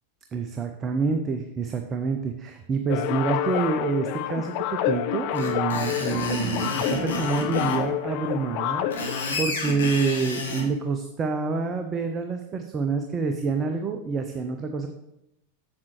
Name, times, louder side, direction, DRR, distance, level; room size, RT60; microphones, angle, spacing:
voice 1, 0.3-14.9, right 4 dB, 25° right, 6 dB, 0.5 m, -27 dB
sound 1, 2.9-9.3, left 12 dB, 45° left, 0.4 m, -28 dB
Screech, 5.3-7.8 8.7-10.7, left 1 dB, 65° left, 1.6 m, -30 dB
7.4 x 7.3 x 3.1 m, 0.87 s
figure-of-eight pair, 90°, 0 cm